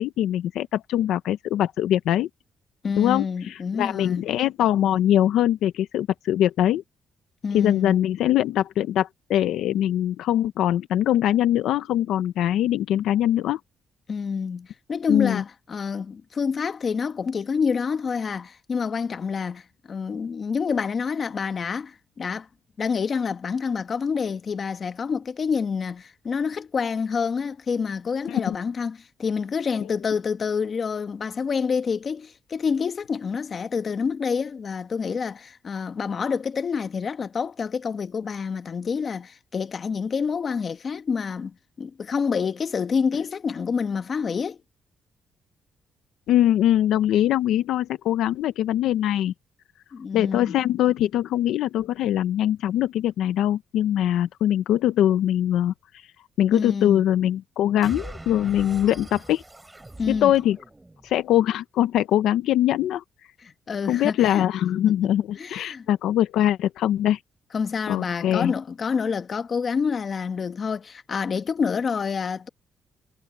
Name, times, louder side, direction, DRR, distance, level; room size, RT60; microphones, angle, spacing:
voice 1, 0.0-2.3 3.0-6.8 7.5-13.6 15.1-15.4 28.3-28.6 46.3-49.3 50.1-55.7 56.4-59.4 60.1-60.6 61.0-63.0 63.9-67.2 67.9-68.5, left 12 dB, 80° left, 0.8 m, -22 dB
voice 2, 2.8-4.2 7.4-8.0 14.1-22.5 22.8-44.6 49.9-50.6 56.5-57.0 60.0-60.3 63.4-64.4 65.4-65.9 67.5-72.5, left 5 dB, 45° left, 1.4 m, -27 dB
sound 1, 57.8-61.2, right 2 dB, 15° right, 6.1 m, -41 dB
cardioid pair, 90°, 0 cm